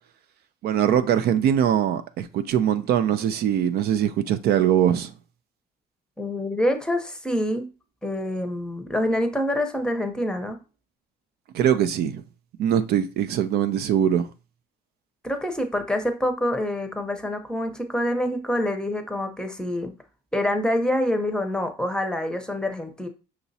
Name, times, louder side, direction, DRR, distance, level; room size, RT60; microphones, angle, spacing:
voice 1, 0.6-5.1 11.5-12.2 12.6-14.3, right 9 dB, 70° right, 0.5 m, -22 dB
voice 2, 6.2-7.7 8.0-10.6 15.2-19.9 20.3-23.1, left 1 dB, 5° left, 0.7 m, -26 dB
5.9 x 2.9 x 2.7 m
cardioid pair, 110°, 17 cm